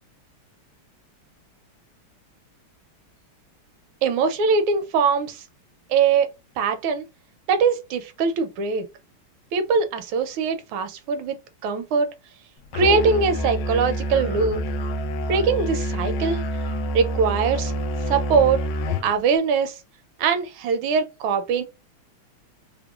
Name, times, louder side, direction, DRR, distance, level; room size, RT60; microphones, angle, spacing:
voice 1, 4.0-5.4 5.9-7.1 7.5-8.9 9.5-11.4 11.6-12.1 12.7-14.6 15.3-16.6 16.9-17.7 18.1-18.6 19.0-19.8 20.2-21.6, right 5 dB, 80° right, 1.4 m, -22 dB
Musical instrument, 12.7-19.1, equal, 75° left, 1.0 m, -27 dB
3.5 x 2.1 x 2.3 m
omnidirectional pair, 2.2 m